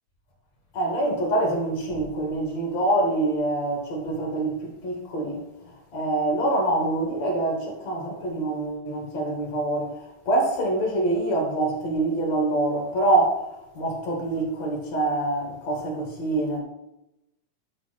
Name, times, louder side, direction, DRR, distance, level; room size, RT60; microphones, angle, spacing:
voice 1, 0.7-5.4 5.9-13.4 13.8-16.6, right 2 dB, 55° left, 3.4 m, -25 dB
11.0 x 4.5 x 5.9 m
omnidirectional pair, 3.8 m